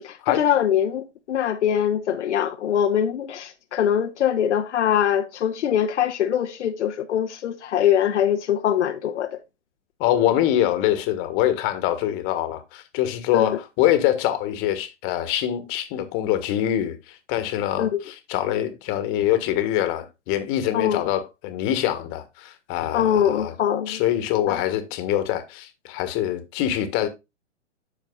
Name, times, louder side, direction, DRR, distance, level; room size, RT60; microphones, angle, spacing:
voice 1, 0.0-9.4 13.3-13.6 17.8-17.9 20.7-21.0 22.9-24.0 24.5-24.6, left 9 dB, 70° left, 0.9 m, -23 dB
voice 2, 10.0-23.5 23.9-27.1, left 12 dB, 35° left, 1.5 m, -24 dB
13.0 x 4.6 x 2.3 m
hypercardioid pair, 125°, 36 cm